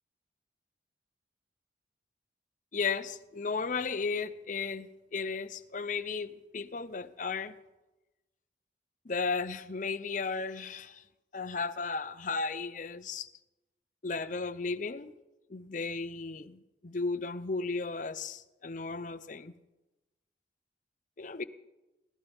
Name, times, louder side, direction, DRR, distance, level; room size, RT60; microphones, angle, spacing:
voice 1, 2.7-7.5 9.0-11.0 11.3-13.3 14.0-15.1 15.5-19.5 21.2-21.4, left 4 dB, 45° left, 0.7 m, -35 dB
22.0 x 17.0 x 3.5 m
head